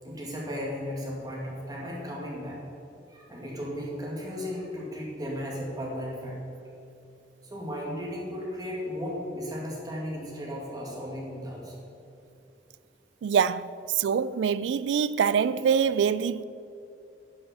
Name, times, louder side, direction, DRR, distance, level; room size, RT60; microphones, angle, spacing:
voice 1, 0.0-2.6 3.1-6.4 7.4-11.8, equal, 20° right, 2.1 m, -35 dB
voice 2, 13.2-16.4, right 7 dB, 75° right, 0.3 m, -25 dB
10.0 x 5.6 x 7.0 m
head